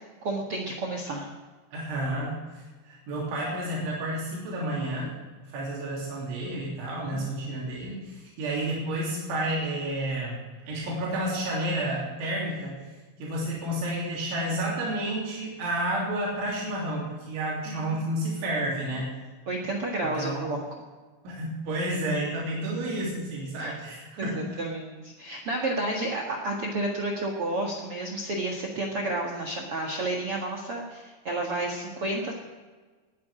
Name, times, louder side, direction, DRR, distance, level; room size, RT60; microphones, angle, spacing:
voice 1, 0.2-1.3 7.1-7.3 7.6-7.7 17.7-18.0 19.5-20.6 23.6-23.8 24.2-32.3, right 2 dB, 65° right, 0 dB, 1.4 m, -31 dB
voice 2, 1.7-5.1 5.5-10.4 10.7-12.8 13.2-19.1 20.2-20.5 21.2-24.5, right 1 dB, 85° right, -5 dB, 5.6 m, -30 dB
20.5 x 9.6 x 5.0 m, 1.4 s
omnidirectional pair, 5.3 m